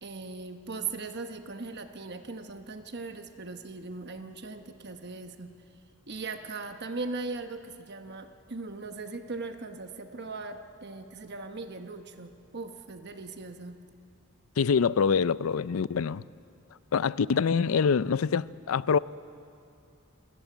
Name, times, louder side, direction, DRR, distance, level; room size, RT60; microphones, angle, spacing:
voice 1, 0.0-5.5 6.1-13.8, right 3 dB, 55° right, 1.1 m, -39 dB
voice 2, 14.6-16.2 16.9-19.0, left 6 dB, 85° left, 0.5 m, -25 dB
28.5 x 14.5 x 9.1 m
head